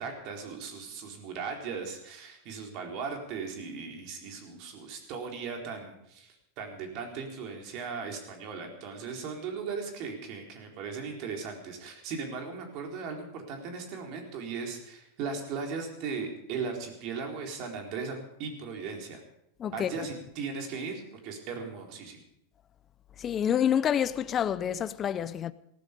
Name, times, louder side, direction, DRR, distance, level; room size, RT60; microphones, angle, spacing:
voice 1, 0.0-19.2 19.7-22.2, right 5 dB, 50° right, 4.2 m, -38 dB
voice 2, 19.6-19.9 23.2-25.5, left 9 dB, 30° left, 0.6 m, -28 dB
18.5 x 13.5 x 5.3 m
hypercardioid pair, 115°, 0 cm